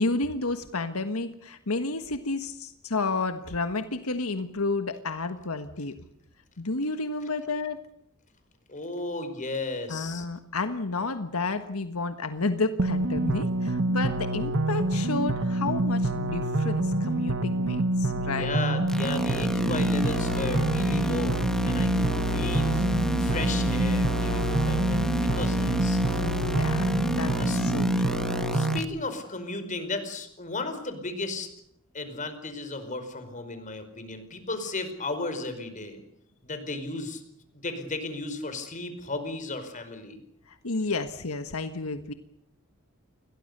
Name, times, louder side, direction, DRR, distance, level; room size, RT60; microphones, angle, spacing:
voice 1, 0.0-5.9 6.6-7.8 9.9-18.5 26.2-28.2 40.5-42.1, left 3 dB, 85° left, 8 dB, 1.5 m, -31 dB
voice 2, 8.7-10.3 18.3-21.4 21.6-22.9 23.2-26.0 27.4-27.6 28.5-31.5 31.9-36.0 36.4-37.2 37.5-40.2, left 2 dB, 35° left, 9 dB, 5.0 m, -34 dB
sound 1, 12.8-28.8, right 1 dB, 65° right, 1.4 m, -26 dB
sound 2, 18.9-28.8, equal, 5° left, 1.6 m, -30 dB
29.5 x 22.5 x 6.8 m, 0.73 s
head